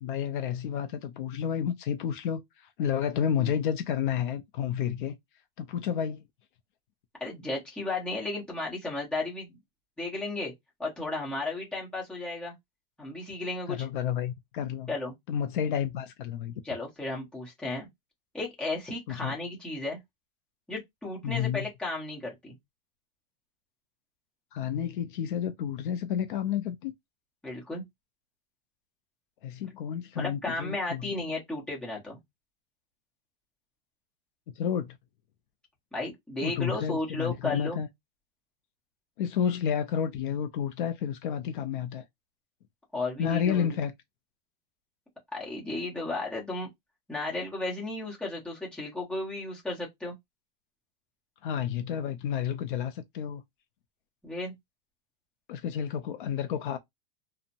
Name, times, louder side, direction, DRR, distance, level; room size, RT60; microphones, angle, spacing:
voice 1, 0.0-5.2 5.6-6.2 13.7-14.9 15.3-16.5 19.1-19.3 21.2-21.7 24.5-26.9 29.4-31.1 34.6-35.0 36.4-37.9 39.2-42.0 43.2-43.9 51.4-53.4 55.5-56.8, left 8 dB, 60° left, 0.5 m, -30 dB
voice 2, 7.2-9.6 10.0-10.5 10.8-12.5 13.0-13.8 14.9-15.1 16.6-17.9 18.3-20.0 20.7-22.5 27.4-27.8 30.1-32.2 35.9-37.8 42.9-43.8 45.3-46.7 47.1-50.1 54.2-54.5, left 2 dB, 5° left, 0.9 m, -34 dB
2.8 x 2.1 x 2.6 m
supercardioid pair, 155°, 29 cm